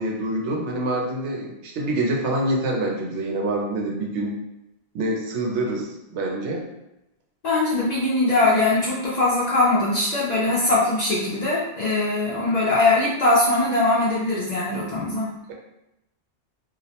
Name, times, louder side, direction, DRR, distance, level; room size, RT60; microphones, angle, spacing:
voice 1, 0.0-4.3 4.9-6.7, right 1 dB, 85° right, 0 dB, 0.9 m, -26 dB
voice 2, 7.4-15.3, left 2 dB, 55° left, -7 dB, 0.5 m, -21 dB
2.3 x 2.0 x 2.8 m, 0.91 s
omnidirectional pair, 1.1 m